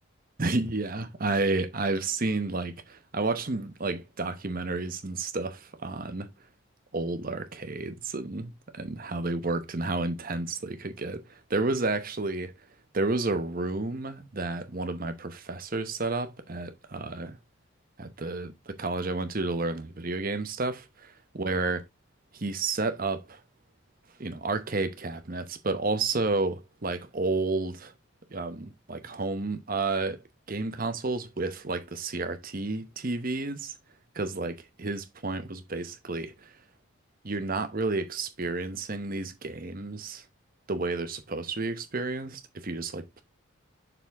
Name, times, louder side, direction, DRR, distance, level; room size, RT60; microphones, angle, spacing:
voice 1, 0.4-6.3 6.9-12.5 12.9-17.4 18.0-21.8 22.3-23.4 24.2-27.9 28.3-30.2 30.5-33.7 34.1-36.5 37.2-40.2 40.7-43.2, right 3 dB, 40° right, 0.9 m, -31 dB
6.9 x 4.3 x 3.5 m
head